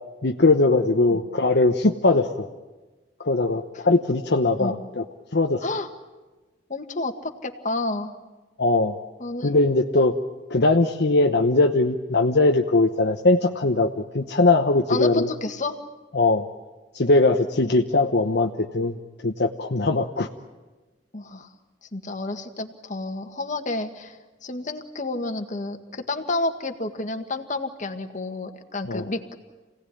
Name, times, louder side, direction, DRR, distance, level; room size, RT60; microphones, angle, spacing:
voice 1, 0.2-2.5 3.2-5.0 5.3-5.6 8.6-9.0 9.4-10.1 10.5-15.3 16.1-16.5 16.9-18.9 19.2-20.3 28.9-29.0, left 2 dB, 65° left, 3 dB, 1.0 m, -20 dB
voice 2, 6.7-8.1 9.2-9.5 14.9-15.8 21.1-21.5 21.8-29.3, left 2 dB, 45° left, 6 dB, 1.8 m, -30 dB
27.5 x 17.5 x 10.0 m, 1.2 s
head